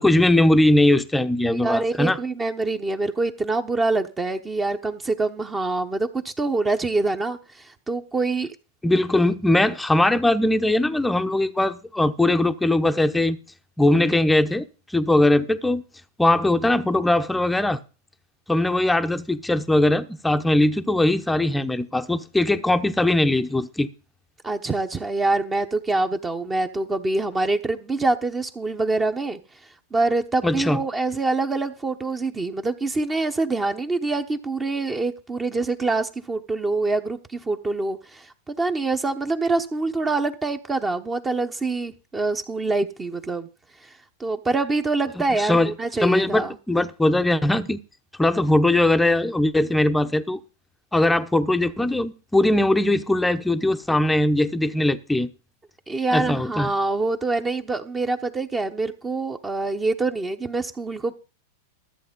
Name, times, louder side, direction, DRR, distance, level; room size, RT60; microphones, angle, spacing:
voice 1, 0.0-2.2 8.8-13.4 13.8-15.8 16.2-17.8 18.5-23.9 30.4-30.8 45.3-45.7 46.0-47.8 48.2-50.4 50.9-55.3 56.1-56.7, left 1 dB, 5° left, 0.8 m, -20 dB
voice 2, 1.5-8.5 24.4-29.4 29.9-43.5 43.8-43.9 44.2-46.6 55.9-61.1, right 3 dB, 15° right, 1.0 m, -25 dB
13.5 x 7.8 x 5.2 m
hypercardioid pair, 120°, 0 cm